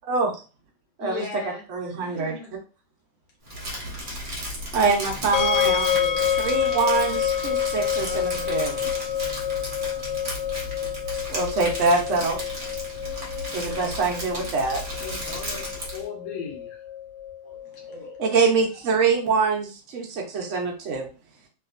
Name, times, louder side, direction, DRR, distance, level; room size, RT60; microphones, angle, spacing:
voice 1, 1.0-1.6 1.9-2.6 12.7-13.5 14.3-14.6, left 5 dB, 45° left, -1 dB, 1.2 m, -39 dB
voice 2, 1.7-2.3 4.7-5.9 6.4-8.8 11.3-12.4 13.5-14.8 18.2-21.1, right 4 dB, 85° right, 0 dB, 0.6 m, -24 dB
Crumpling crinkling, 3.4-16.0, equal, 40° right, 0.7 m, -34 dB
sound 1, 5.3-18.3, left 9 dB, 90° left, 1.5 m, -28 dB
voice 3, 5.6-6.8 8.0-8.8 14.7-16.8 17.4-17.6 17.9-18.2, left 4 dB, 70° left, 1 dB, 1.7 m, -39 dB
3.4 x 2.9 x 2.4 m, 0.34 s
omnidirectional pair, 2.3 m